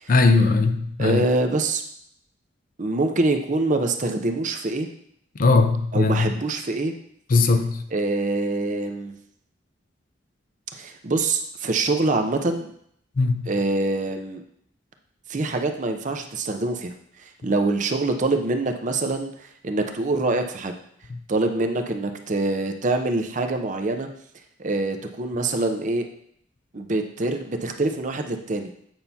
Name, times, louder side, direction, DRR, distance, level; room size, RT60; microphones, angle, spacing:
voice 1, 0.1-1.2 5.4-6.3 7.3-7.8 13.2-13.4, left 3 dB, 45° left, 0.5 m, -19 dB
voice 2, 1.0-1.8 2.8-4.9 5.9-6.9 7.9-9.1 10.7-12.7 13.5-14.4 15.3-16.9 17.2-20.7 21.3-24.1 24.6-26.1 26.7-28.7, right 2 dB, 40° right, 0.6 m, -25 dB
8.8 x 5.7 x 2.8 m
head